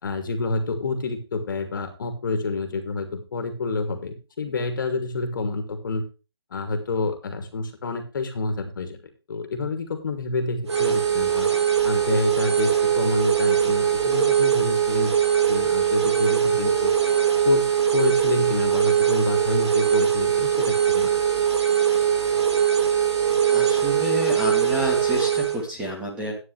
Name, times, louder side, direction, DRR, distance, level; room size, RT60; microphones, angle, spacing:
voice 1, 0.0-6.0 6.5-9.0 9.3-11.5 11.8-15.1 15.5-16.9 17.4-21.2, left 3 dB, 50° left, 6 dB, 2.6 m, -28 dB
sound 1, 10.7-25.6, right 9 dB, 80° right, 4.3 m, -21 dB
voice 2, 23.5-26.3, equal, 5° right, -1 dB, 2.7 m, -29 dB
13.0 x 9.8 x 3.4 m, 0.33 s
hypercardioid pair, 165°, 14 cm